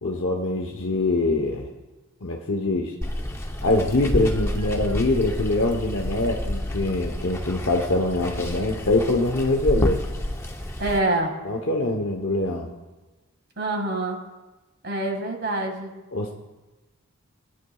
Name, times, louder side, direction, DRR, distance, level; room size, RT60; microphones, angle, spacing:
voice 1, 0.0-1.7 2.2-2.9 3.6-10.0 11.4-12.7 16.1-16.3, left 2 dB, 60° left, 1 dB, 0.9 m, -24 dB
Water, 3.0-11.0, left 1 dB, 10° left, 0.7 m, -29 dB
voice 2, 10.8-11.3 13.6-14.2 14.8-15.9, right 2 dB, 50° right, 3 dB, 1.9 m, -25 dB
20.5 x 9.3 x 2.3 m, 1.1 s
head